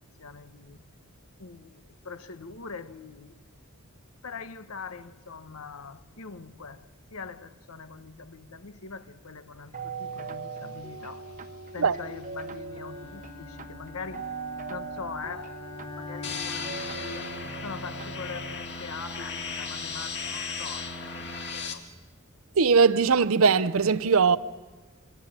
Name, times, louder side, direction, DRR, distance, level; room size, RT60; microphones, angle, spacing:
voice 1, 0.2-0.8 1.4-3.3 4.2-14.3 14.7-15.5 15.9-17.3 17.6-21.8, left 5 dB, 85° left, 1.1 m, -42 dB
sound 1, 9.7-18.5, right 4 dB, 35° right, 0.9 m, -40 dB
Bowed string instrument, 12.7-17.6, left 4 dB, 25° left, 3.1 m, -45 dB
sound 2, 16.2-21.7, left 4 dB, 50° left, 2.0 m, -36 dB
voice 2, 22.6-24.4, right 5 dB, 75° right, 0.7 m, -20 dB
26.5 x 22.5 x 7.5 m
head